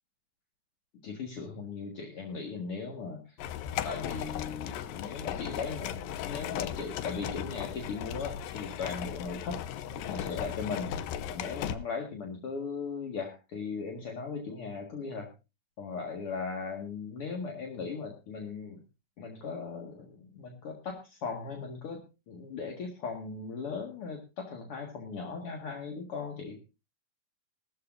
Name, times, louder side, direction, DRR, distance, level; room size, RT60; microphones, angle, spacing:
voice 1, 1.0-3.4 3.8-9.6 9.9-10.9 11.3-15.3 15.8-18.8 19.2-26.6, left 5 dB, 45° left, 2 dB, 2.0 m, -38 dB
sound 1, 3.4-11.7, left 10 dB, 75° left, 2.3 m, -37 dB
18.5 x 13.5 x 2.6 m, 0.28 s
omnidirectional pair, 4.5 m